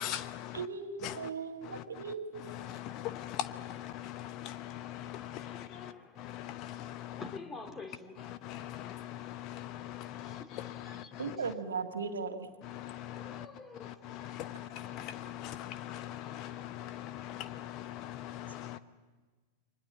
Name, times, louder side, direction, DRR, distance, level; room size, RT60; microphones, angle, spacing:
voice 1, 0.0-0.6 1.0-1.1 1.7-1.8 2.6-5.9 6.2-7.2 8.3-11.0 12.8-13.5 13.8-18.8, left 12 dB, 40° left, 0.8 m, -41 dB
voice 2, 0.5-2.4 11.2-12.4, right 5 dB, 70° right, 2.0 m, -37 dB
voice 3, 4.4-6.2 7.2-8.3 10.2-11.4 13.1-14.0, left 3 dB, 20° left, 2.8 m, -49 dB
29.5 x 23.5 x 7.5 m
figure-of-eight pair, 90°, 0 cm